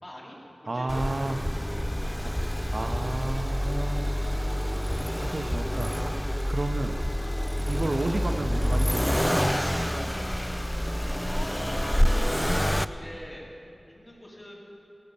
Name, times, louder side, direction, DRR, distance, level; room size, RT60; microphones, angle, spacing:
voice 1, 0.0-2.4 11.3-13.4 13.9-14.5, equal, 35° left, -4 dB, 2.8 m, -43 dB
voice 2, 0.7-1.4 2.2-2.3 2.7-4.1 4.9-6.0 6.4-7.0 7.7-9.4, right 2 dB, 60° right, 5 dB, 0.7 m, -32 dB
Accelerating revving vroom, 0.9-12.8, equal, 5° left, 0.3 m, -27 dB
17.0 x 7.0 x 6.9 m, 2.7 s
wide cardioid pair, 70°, 0 cm